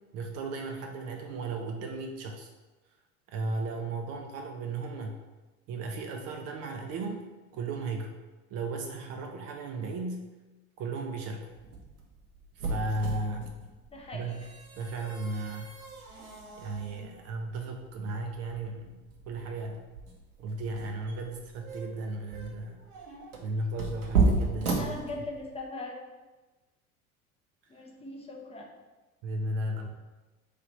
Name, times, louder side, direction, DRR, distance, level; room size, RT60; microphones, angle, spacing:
voice 1, 0.1-2.5 3.3-5.2 5.7-7.3 7.5-8.2 8.5-10.3 10.8-11.5 12.6-13.5 14.1-15.7 16.6-19.8 20.4-22.8 23.4-25.0 29.2-29.9, right 2 dB, 35° right, 3 dB, 0.4 m, -35 dB
sound 1, 11.5-25.6, right 3 dB, 80° right, 0.9 m, -34 dB
voice 2, 13.9-14.3 24.8-25.9 27.7-28.7, left 2 dB, 15° left, -1 dB, 0.5 m, -40 dB
3.2 x 2.8 x 4.1 m, 1.2 s
figure-of-eight pair, 75°, 43 cm